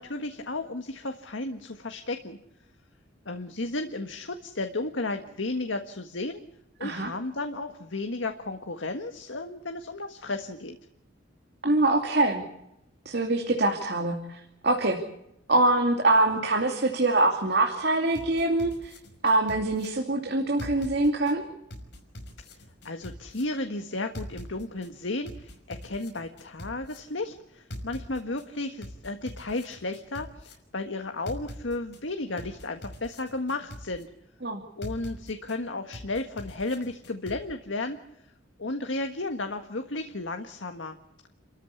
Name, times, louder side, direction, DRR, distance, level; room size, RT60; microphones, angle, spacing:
voice 1, 0.0-2.4 3.2-6.4 6.8-10.8 22.5-22.6 22.8-34.1 34.8-38.0 38.6-41.0, left 2 dB, 80° left, 6 dB, 1.6 m, -33 dB
voice 2, 6.8-7.1 11.6-12.4 13.0-15.0 15.5-18.9 19.2-21.4 34.4-34.6, right 2 dB, 60° right, 2 dB, 2.6 m, -24 dB
sound 1, 18.1-19.9 20.6-21.3 21.7-23.4 24.1-24.9 25.3-27.0 27.7-28.4 28.8-30.5 31.3-32.0 32.4-34.0 34.8-35.6 35.9-37.4, left 1 dB, 65° left, 5.6 m, -42 dB
29.5 x 14.0 x 8.4 m, 0.83 s
head